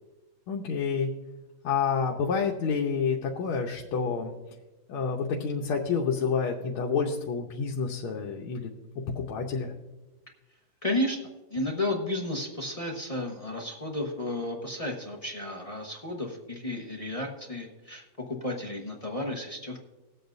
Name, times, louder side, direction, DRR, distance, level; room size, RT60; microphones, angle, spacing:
voice 1, 0.5-1.1 1.6-4.3 4.9-8.7 9.1-9.7, left 5 dB, 85° left, -1 dB, 1.7 m, -28 dB
voice 2, 10.8-19.8, left 1 dB, 25° left, 0 dB, 0.8 m, -33 dB
20.5 x 8.3 x 2.6 m, 1.1 s
omnidirectional pair, 2.3 m